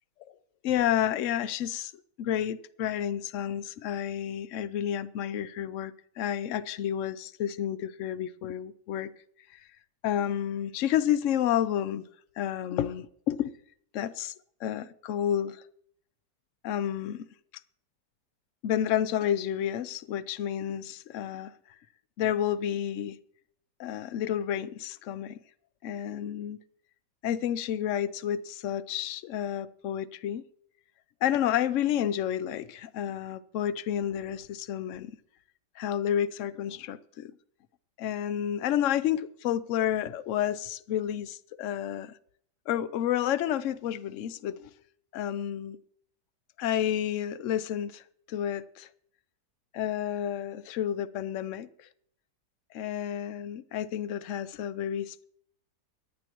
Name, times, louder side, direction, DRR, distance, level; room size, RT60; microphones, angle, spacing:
voice 1, 0.6-1.9 2.2-9.1 10.0-12.0 12.4-13.5 13.9-14.3 14.6-15.6 16.6-17.3 18.6-21.5 22.2-23.2 23.8-25.4 25.8-26.6 27.2-30.4 31.2-35.2 35.8-37.3 38.0-42.1 42.7-44.7 45.1-45.8 46.6-48.0 48.3-48.9 49.7-51.9 52.7-55.2, left 10 dB, 65° left, 0.8 m, -30 dB
24.0 x 10.5 x 3.0 m
omnidirectional pair, 1.8 m